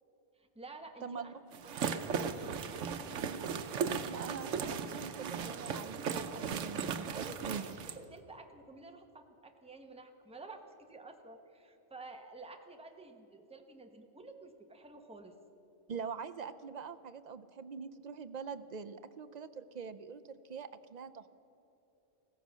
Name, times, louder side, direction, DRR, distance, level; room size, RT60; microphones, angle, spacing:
voice 1, 0.3-2.0 6.8-15.4, right 3 dB, 5° right, 4 dB, 0.9 m, -51 dB
voice 2, 1.0-1.3 3.2-7.6 15.9-21.3, right 6 dB, 50° right, 12 dB, 0.5 m, -44 dB
sound 1, 1.5-8.0, right 6 dB, 90° right, 1.1 m, -37 dB
16.0 x 14.5 x 6.2 m, 2.9 s
omnidirectional pair, 1.2 m